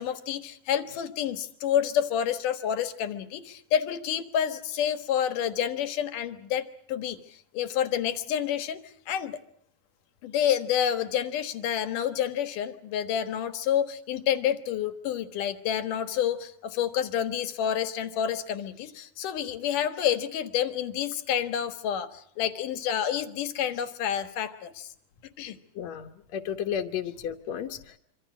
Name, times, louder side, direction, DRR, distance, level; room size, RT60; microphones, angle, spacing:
voice 1, 0.0-9.4 10.2-24.9 25.4-25.6, left 9 dB, 85° left, 10 dB, 3.1 m, -29 dB
voice 2, 25.8-28.0, left 9 dB, 65° left, 4 dB, 2.3 m, -33 dB
26.0 x 26.0 x 6.2 m, 0.64 s
omnidirectional pair, 3.6 m